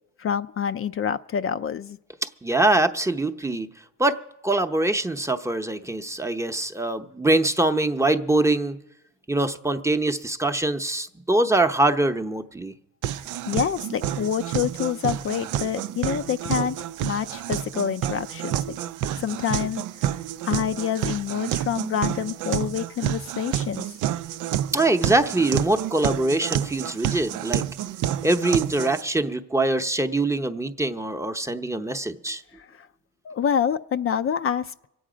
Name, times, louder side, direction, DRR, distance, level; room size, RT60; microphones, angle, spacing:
voice 1, 0.2-2.0 13.5-16.8 17.0-18.8 19.2-20.1 20.5-23.9 32.6-32.9 33.2-34.9, left 8 dB, 45° left, 10 dB, 0.5 m, -27 dB
voice 2, 2.2-3.7 4.0-8.8 9.3-12.7 24.7-27.6 28.2-32.4, right 2 dB, 10° right, 7 dB, 0.7 m, -23 dB
sound 1, 13.0-29.0, right 11 dB, 90° right, 0.5 m, -29 dB
24.0 x 8.6 x 5.0 m, 0.85 s
cardioid pair, 90°, 30 cm